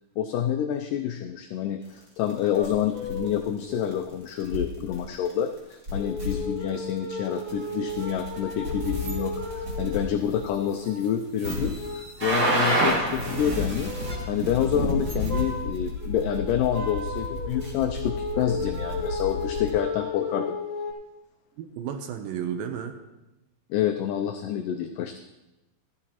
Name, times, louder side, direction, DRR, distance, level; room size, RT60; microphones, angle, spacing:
voice 1, 0.2-13.9 14.3-20.6 23.7-25.2, left 10 dB, 90° left, 6 dB, 1.8 m, -28 dB
sound 1, 2.3-2.7 3.0-3.3 3.9-4.0 4.3-5.0 5.2-5.3 5.6-5.7 5.8-11.1 11.4-19.7, equal, 35° right, 1.9 m, -29 dB
sound 2, 2.5-3.4 3.6-4.1 4.9-5.0 5.9-11.2 11.6-12.8 13.1-13.5 13.8-14.3 14.5-15.7 16.0-20.9, left 2 dB, 20° left, 2.3 m, -35 dB
voice 2, 21.6-22.9, right 8 dB, 75° right, 7 dB, 2.4 m, -32 dB
14.5 x 12.5 x 3.0 m, 0.98 s
omnidirectional pair, 4.4 m